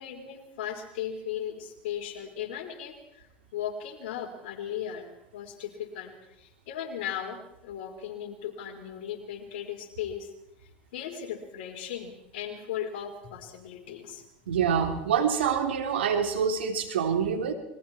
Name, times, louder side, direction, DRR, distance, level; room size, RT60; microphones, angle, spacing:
voice 1, 0.0-10.3 10.6-14.2, left 9 dB, 75° left, 4 dB, 4.5 m, -37 dB
voice 2, 14.5-17.5, right 7 dB, 90° right, 5 dB, 3.2 m, -26 dB
28.0 x 22.5 x 4.5 m, 0.82 s
hypercardioid pair, 85°, 6 cm